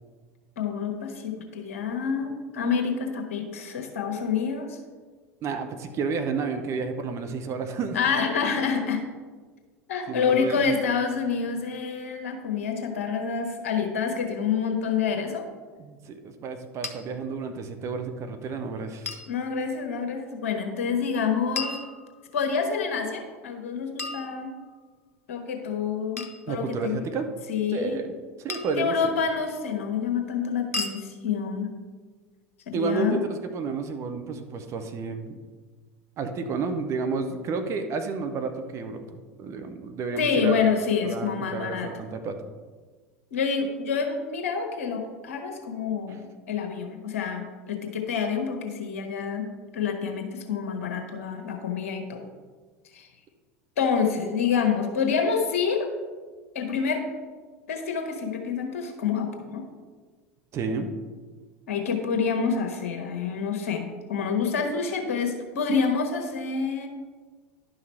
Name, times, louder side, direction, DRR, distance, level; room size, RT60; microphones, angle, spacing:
voice 1, 0.6-4.8 7.9-9.0 9.9-15.5 19.3-21.8 22.3-24.5 25.3-27.0 27.5-28.0 28.8-31.7 32.7-33.2 40.2-41.9 43.3-49.5 49.7-52.2 52.9-53.1 53.8-55.9 56.5-57.0 57.7-59.6 61.7-66.9, left 6 dB, 65° left, 3 dB, 1.3 m, -27 dB
voice 2, 5.4-8.0 10.1-10.7 15.8-19.1 26.5-27.3 27.7-28.1 28.4-29.1 32.7-35.4 36.2-40.6 41.0-42.4 60.5-60.9, right 4 dB, 40° right, 7 dB, 0.9 m, -31 dB
sound 1, 16.8-17.0 19.0-19.3 21.5-22.4 24.0-24.9 26.2-26.4 28.5-28.9 30.7-31.0, left 3 dB, 85° left, 0.7 m, -34 dB
11.0 x 5.7 x 4.3 m, 1.4 s
figure-of-eight pair, 75°, 8 cm